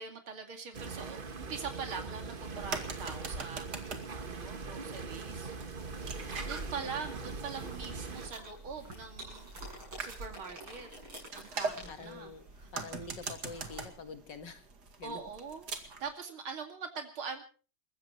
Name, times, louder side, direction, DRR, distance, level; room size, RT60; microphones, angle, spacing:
voice 1, 0.0-5.5 6.0-10.9 11.4-12.3 12.6-12.7 15.0-15.7 16.0-17.4, right 5 dB, 90° right, 5 dB, 3.3 m, -43 dB
sound 1, 0.7-8.3, right 4 dB, 30° right, 1.2 m, -42 dB
sound 2, 2.3-16.1, right 4 dB, 55° right, 2.6 m, -44 dB
sound 3, 4.2-13.9, right 1 dB, 75° right, 8.3 m, -48 dB
voice 2, 11.9-12.5 12.7-14.7 15.0-15.2, left 4 dB, 60° left, 8 dB, 2.3 m, -46 dB
29.0 x 15.0 x 3.1 m, 0.37 s
omnidirectional pair, 2.2 m